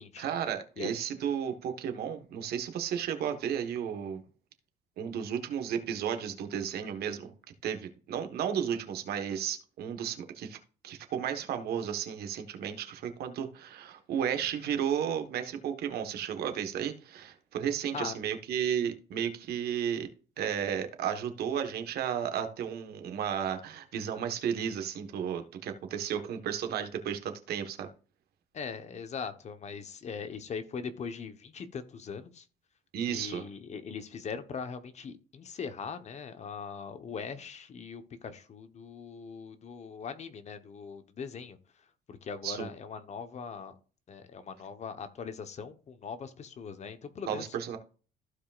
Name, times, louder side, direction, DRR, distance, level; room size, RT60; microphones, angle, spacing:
voice 1, 0.2-4.2 5.0-7.3 7.6-10.6 10.8-20.1 20.4-27.9 32.9-33.5 42.4-42.7 47.3-47.8, right 8 dB, 70° right, 7 dB, 1.4 m, -33 dB
voice 2, 28.5-32.4 33.1-41.6 42.1-43.8 44.1-47.5, left 6 dB, 40° left, 9 dB, 1.1 m, -40 dB
15.0 x 5.0 x 2.5 m, 0.38 s
cardioid pair, 110°, 17 cm